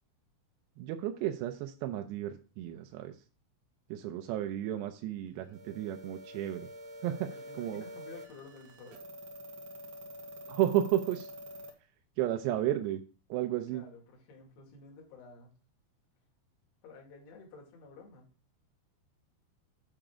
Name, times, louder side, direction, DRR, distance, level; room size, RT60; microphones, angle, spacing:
voice 1, 0.8-3.1 3.9-6.7 7.0-7.3 7.6-7.8 10.5-11.3 12.2-13.0 13.3-13.9, right 12 dB, 80° right, 5 dB, 2.8 m, -32 dB
sound 1, 5.5-11.7, equal, 65° right, 2.7 m, -47 dB
voice 2, 7.3-9.0 13.7-15.5 16.8-18.3, left 3 dB, 70° left, 0 dB, 4.3 m, -52 dB
8.8 x 7.0 x 3.6 m, 0.36 s
omnidirectional pair, 5.0 m